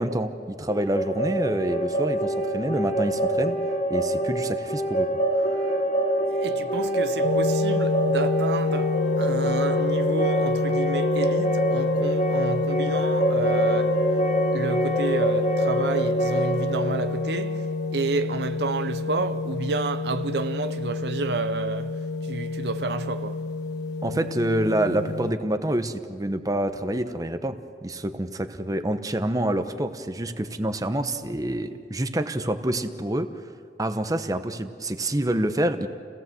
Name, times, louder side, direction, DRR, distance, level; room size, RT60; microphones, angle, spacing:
voice 1, 0.0-3.6 3.9-5.1 5.6-5.7 24.0-27.6 27.8-33.3 33.8-35.9, right 1 dB, 20° right, 0.9 m, -27 dB
sound 1, 0.7-18.5, right 1 dB, 45° left, 2.6 m, -26 dB
voice 2, 6.3-14.0 14.5-23.5, right 3 dB, 65° right, 0.7 m, -30 dB
sound 2, 7.2-25.3, left 3 dB, 75° left, 1.3 m, -28 dB
29.5 x 17.0 x 7.7 m
head